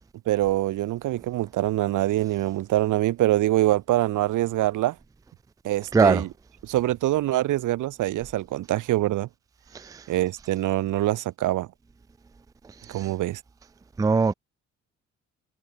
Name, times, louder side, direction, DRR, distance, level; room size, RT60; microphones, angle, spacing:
voice 1, 0.3-4.9 5.6-6.3 6.6-9.3 10.1-11.7 12.9-13.4, right 15 dB, 85° right, 3.0 m, -24 dB
voice 2, 5.9-6.2 9.7-10.0 12.9-13.1 14.0-14.3, right 4 dB, 10° right, 0.4 m, -21 dB
cardioid pair, 90°, 30 cm